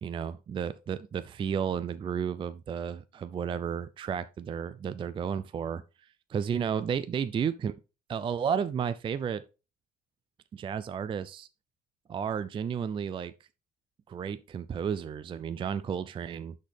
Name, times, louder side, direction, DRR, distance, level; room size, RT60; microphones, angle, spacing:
voice 1, 0.0-5.8 6.3-7.7 8.1-9.4 10.5-11.5 12.1-13.3 14.1-16.6, right 7 dB, 30° right, 0.4 m, -32 dB
11.5 x 4.3 x 3.3 m
cardioid pair, 110°, 17 cm